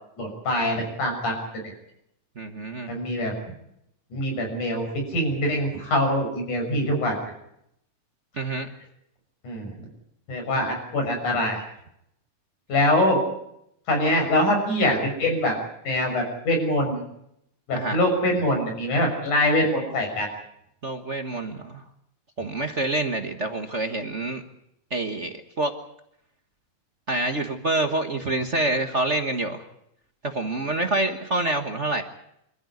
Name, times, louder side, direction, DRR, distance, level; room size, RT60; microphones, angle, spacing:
voice 1, 0.2-1.4 1.6-1.7 2.9-3.3 4.1-7.2 9.4-9.7 10.3-11.6 12.7-13.2 13.9-15.6 15.9-17.0 17.7-20.3, left 1 dB, 70° left, 3 dB, 7.7 m, -24 dB
voice 2, 2.4-2.9 8.4-8.7 17.7-18.0 20.8-21.8 22.4-24.4 24.9-25.7 27.1-29.6 30.2-32.0, right 2 dB, 55° right, 5 dB, 0.7 m, -27 dB
27.0 x 14.0 x 9.7 m, 0.77 s
omnidirectional pair, 3.7 m